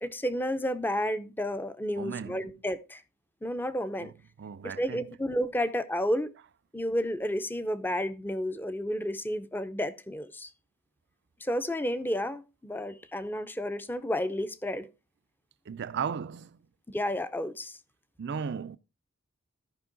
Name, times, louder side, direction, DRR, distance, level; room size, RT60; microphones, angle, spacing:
voice 1, 0.0-3.0 3.4-4.1 4.6-6.3 6.7-10.5 11.4-14.9 16.9-17.8, equal, 10° left, 0.6 m, -31 dB
voice 2, 2.0-2.4 4.0-4.1 4.4-5.0 15.7-16.6 18.2-18.8, right 6 dB, 55° right, 0.4 m, -35 dB
13.5 x 5.3 x 3.8 m
head